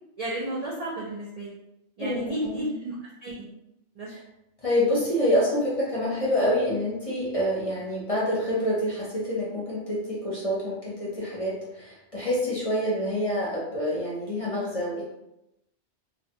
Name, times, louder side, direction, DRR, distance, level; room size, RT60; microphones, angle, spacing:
voice 1, 0.2-1.5 2.0-3.0 3.2-3.5 4.0-4.1, right 1 dB, 60° right, -4 dB, 0.4 m, -32 dB
voice 2, 2.0-2.6 4.1-4.2 4.6-15.0, left 1 dB, 40° left, -6 dB, 0.6 m, -27 dB
2.4 x 2.2 x 2.7 m, 0.88 s
omnidirectional pair, 1.2 m